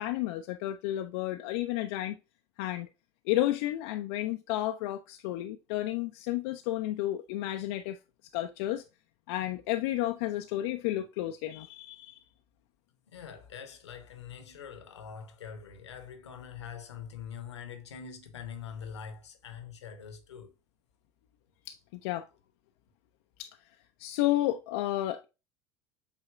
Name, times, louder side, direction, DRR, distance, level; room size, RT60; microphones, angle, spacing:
voice 1, 0.0-2.2 2.6-2.9 3.3-8.0 8.3-8.8 9.3-12.2 21.7-21.8 22.0-22.3 23.4-23.5 24.0-25.2, left 14 dB, 60° left, 0.4 m, -31 dB
voice 2, 13.1-20.5, left 7 dB, 80° left, 0.9 m, -44 dB
8.1 x 2.8 x 2.3 m
figure-of-eight pair, 70°, 15 cm